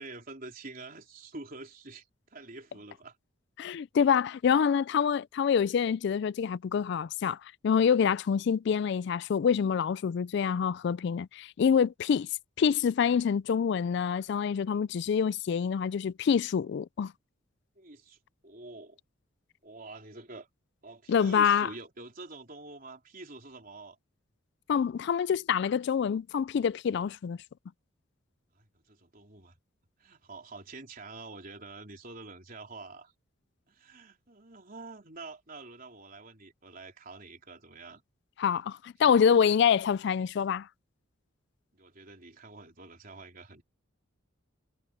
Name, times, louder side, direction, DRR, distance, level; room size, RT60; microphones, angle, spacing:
voice 1, 0.0-3.2 17.8-19.0 19.6-20.5 20.8-24.0 28.5-29.6 30.0-33.1 33.7-38.0 41.7-43.6, right 3 dB, 45° right, 3.9 m, -47 dB
voice 2, 3.6-7.4 7.6-12.3 12.6-17.1 21.1-21.7 24.7-27.4 38.4-40.7, left 7 dB, 60° left, 0.3 m, -26 dB
head